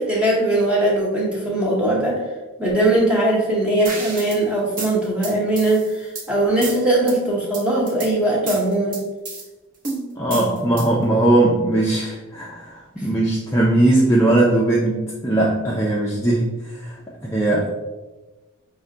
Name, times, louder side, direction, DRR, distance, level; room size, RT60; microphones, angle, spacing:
voice 1, 0.0-2.2 2.6-9.0 13.0-13.1, right 1 dB, 5° right, -4 dB, 0.9 m, -20 dB
sound 1, 3.8-4.4 4.8-6.3 6.6-7.1 7.5-8.1 8.5-9.4 9.8-11.0, right 3 dB, 40° right, 0.7 m, -31 dB
voice 2, 10.2-17.7, right 1 dB, 10° left, -4 dB, 0.4 m, -19 dB
5.5 x 2.1 x 3.7 m, 1.2 s
head